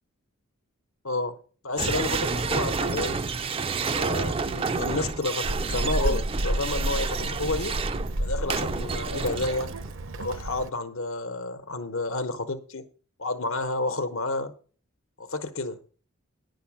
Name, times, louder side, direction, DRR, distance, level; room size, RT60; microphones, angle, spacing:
voice 1, 1.6-3.2 3.8-7.8 8.2-9.7 10.2-12.8 13.2-14.5 15.2-15.8, left 2 dB, 70° left, 1.0 m, -30 dB
sound 1, 1.8-9.9, right 4 dB, 25° right, 0.4 m, -30 dB
Child speech kid speaking, 5.4-10.7, right 1 dB, 65° right, 0.8 m, -30 dB
10.0 x 5.7 x 7.1 m
head